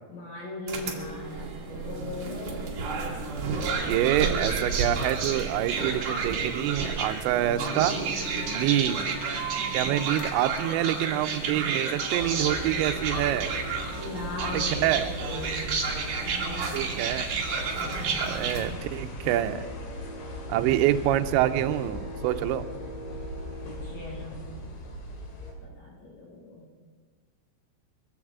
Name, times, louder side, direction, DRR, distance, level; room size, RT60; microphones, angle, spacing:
voice 1, 0.1-2.7 8.3-8.6 14.0-16.8 18.0-18.8 23.8-24.4 25.6-26.7, left 2 dB, 70° left, -5 dB, 8.1 m, -39 dB
sound 1, 0.7-18.7, right 4 dB, 50° right, 2.8 m, -31 dB
voice 2, 3.8-7.9 8.5-9.1 9.7-13.6 14.5-15.1 16.7-17.4 18.2-19.6 20.5-22.7, right 13 dB, 90° right, 8 dB, 2.5 m, -26 dB
Bass guitar, 7.4-13.7, left 2 dB, 45° left, 3.1 m, -46 dB
sound 2, 12.2-25.5, left 1 dB, 85° left, 5.7 m, -38 dB
23.0 x 16.0 x 3.6 m, 1.5 s
omnidirectional pair, 5.9 m